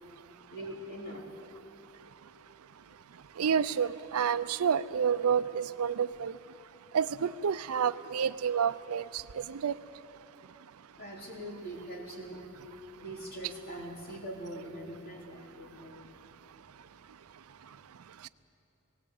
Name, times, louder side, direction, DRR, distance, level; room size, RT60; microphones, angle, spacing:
voice 1, 0.5-1.2 11.0-12.5 13.0-16.1, right 1 dB, 45° left, -2 dB, 3.4 m, -42 dB
voice 2, 3.4-6.3 6.9-9.2 9.5-9.7, right 7 dB, 80° right, 15 dB, 0.5 m, -29 dB
18.0 x 18.0 x 8.3 m, 2.9 s
head